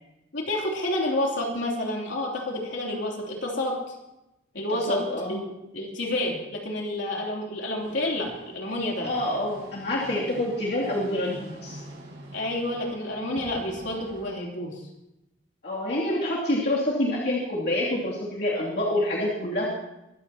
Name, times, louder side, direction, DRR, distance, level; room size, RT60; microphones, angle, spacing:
voice 1, 0.3-3.7 4.5-5.0 5.3-5.4 5.7-9.1 12.3-14.8, left 1 dB, 75° left, -1 dB, 3.3 m, -29 dB
voice 2, 4.7-5.4 9.0-11.8 15.6-19.7, left 1 dB, 55° left, -5 dB, 2.9 m, -27 dB
sound 1, 7.8-14.2, right 1 dB, 60° right, 7.4 m, -45 dB
23.5 x 14.5 x 3.0 m, 0.92 s
head